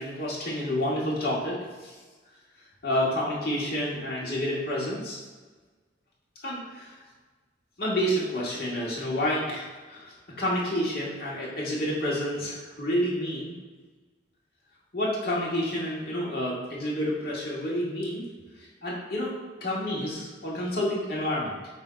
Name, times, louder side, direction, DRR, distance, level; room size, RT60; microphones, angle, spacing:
voice 1, 0.0-1.9 2.8-5.2 6.4-6.9 7.8-13.5 14.9-18.2 18.8-19.3 19.6-21.5, equal, 55° left, -6 dB, 2.0 m, -29 dB
7.3 x 3.0 x 5.1 m, 1.4 s
head